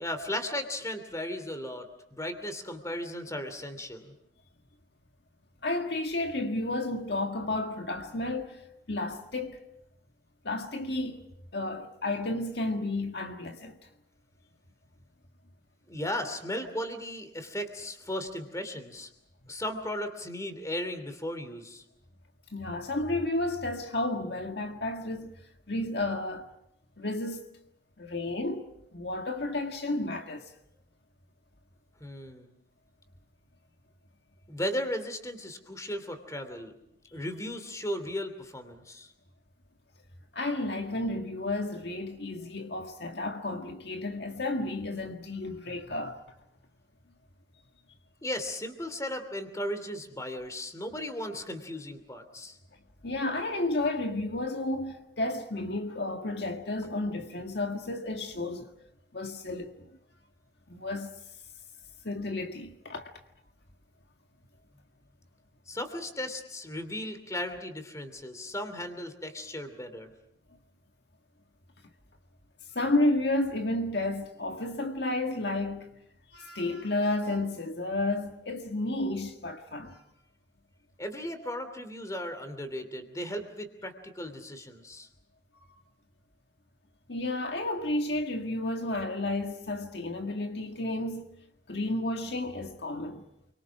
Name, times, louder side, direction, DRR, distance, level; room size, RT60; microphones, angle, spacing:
voice 1, 0.0-4.1 15.9-19.1 19.5-21.8 32.0-32.5 34.5-36.7 37.1-39.1 48.2-52.6 65.7-70.1 81.0-85.1, left 1 dB, 20° left, 2.8 m, -36 dB
voice 2, 5.6-9.6 10.4-11.2 11.5-13.8 22.5-25.4 25.7-26.5 27.0-27.5 28.0-28.7 28.9-30.5 40.3-46.2 53.0-58.7 59.1-59.9 60.7-61.1 62.0-63.1 72.7-75.9 76.3-80.0 85.5-85.7 87.1-91.3 91.7-93.3, left 2 dB, 65° left, 1.8 m, -32 dB
29.5 x 24.0 x 6.1 m
head